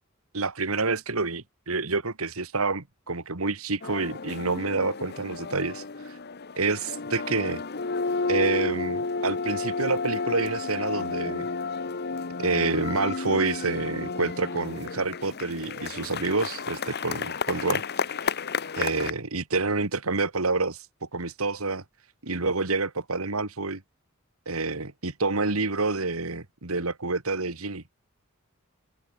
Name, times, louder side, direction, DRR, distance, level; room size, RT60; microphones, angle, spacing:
voice 1, 0.3-5.8 6.6-7.6 8.3-11.5 12.4-17.8 18.8-20.8 21.1-21.8 22.2-23.8 24.5-27.8, right 3 dB, 75° right, 2.2 m, -28 dB
sound 1, 3.8-19.1, left 4 dB, 50° left, 1.2 m, -32 dB
head